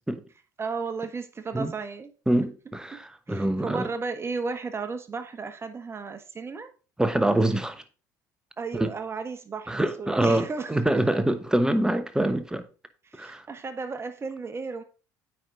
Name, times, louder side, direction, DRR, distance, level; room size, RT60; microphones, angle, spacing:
voice 1, 0.6-2.1 3.3-6.7 8.6-11.0 13.0-14.8, right 4 dB, 25° right, 1.3 m, -34 dB
voice 2, 2.3-3.9 7.0-7.8 8.8-8.9 9.7-12.6 13.2-13.4, right 1 dB, 5° right, 1.0 m, -25 dB
9.1 x 4.8 x 3.9 m
figure-of-eight pair, 65°, 10 cm